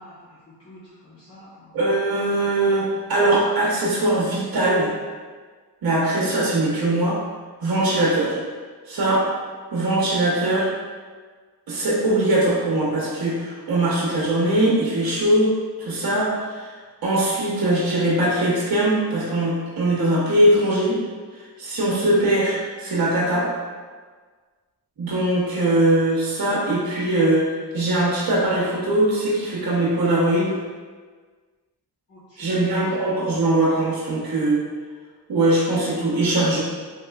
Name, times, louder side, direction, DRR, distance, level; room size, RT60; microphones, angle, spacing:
voice 1, 0.0-1.8 32.1-33.1 35.3-35.4, equal, 35° left, -10 dB, 0.8 m, -44 dB
voice 2, 1.7-4.9 5.8-7.2 7.6-8.4 8.9-9.2 9.7-10.7 11.7-16.7 17.0-21.0 21.6-23.5 25.0-30.6 32.4-34.6 35.3-36.6, right 1 dB, 60° right, -5 dB, 0.9 m, -21 dB
3.2 x 2.9 x 2.3 m, 1.5 s
cardioid pair, 70°, 41 cm